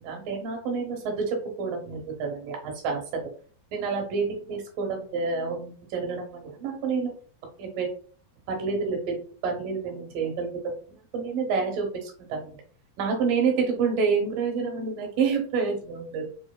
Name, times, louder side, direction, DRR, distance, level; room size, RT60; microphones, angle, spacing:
voice 1, 0.0-3.3 3.7-7.1 7.6-7.9 8.5-12.6 13.0-16.3, right 5 dB, 70° right, 1 dB, 2.5 m, -28 dB
5.6 x 2.9 x 2.2 m, 0.43 s
omnidirectional pair, 4.4 m